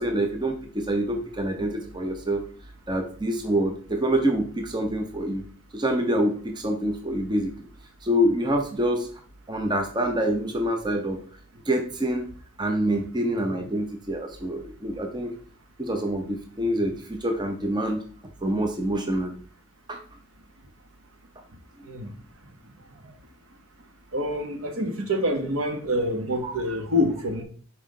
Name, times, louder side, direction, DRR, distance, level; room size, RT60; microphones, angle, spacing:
voice 1, 0.0-2.4 2.9-5.4 5.7-7.5 8.0-9.1 9.5-11.2 11.7-12.3 12.6-15.3 15.8-18.0 18.4-19.4 19.9-20.0 26.4-26.5, right 1 dB, 20° right, 0.6 m, -26 dB
voice 2, 24.1-27.4, left 1 dB, 75° right, 1.1 m, -26 dB
5.4 x 4.6 x 3.7 m
head